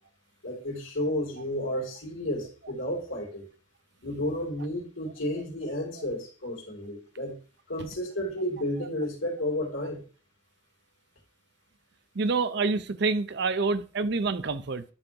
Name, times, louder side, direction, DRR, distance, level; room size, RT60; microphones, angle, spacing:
voice 1, 0.4-3.5 4.0-7.4 7.7-10.0, left 1 dB, 90° left, 3.1 m, -32 dB
voice 2, 12.2-14.8, right 4 dB, 60° right, 0.6 m, -27 dB
11.0 x 5.3 x 2.9 m
head